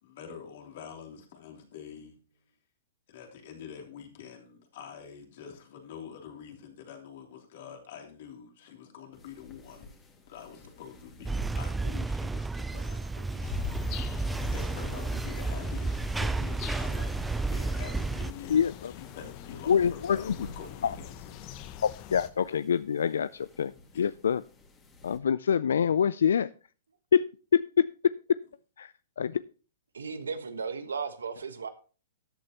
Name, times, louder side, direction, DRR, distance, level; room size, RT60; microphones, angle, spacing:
voice 1, 0.0-2.1 3.1-9.9 10.3-13.5 14.4-18.6 19.0-21.1 23.9-24.0, left 7 dB, 60° left, 3.1 m, -46 dB
sound 1, 9.1-25.2, left 2 dB, 20° left, 2.2 m, -53 dB
sound 2, 11.2-18.3, right 3 dB, 10° right, 0.4 m, -32 dB
sound 3, 13.4-22.3, left 10 dB, 40° left, 0.8 m, -43 dB
voice 2, 18.5-18.9 19.7-20.3 20.8-21.0 21.8-23.7 24.0-24.4 25.0-26.5 27.1-27.9 28.8-29.4, left 7 dB, 75° left, 0.4 m, -26 dB
voice 3, 29.9-31.7, right 5 dB, 85° right, 1.3 m, -35 dB
13.0 x 8.8 x 3.0 m
hypercardioid pair, 125°, 0 cm